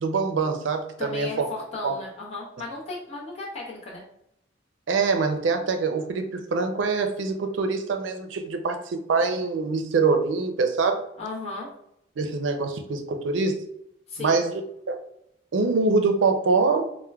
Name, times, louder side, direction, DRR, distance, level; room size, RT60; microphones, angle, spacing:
voice 1, 0.0-1.5 1.8-1.9 4.9-11.0 12.2-13.6 14.2-14.6 14.9-15.0 15.5-16.9, right 4 dB, 80° right, 6 dB, 0.4 m, -24 dB
voice 2, 1.0-4.0 11.2-11.7 14.1-14.4, left 2 dB, 35° left, -5 dB, 0.7 m, -35 dB
4.4 x 2.1 x 2.3 m, 0.77 s
head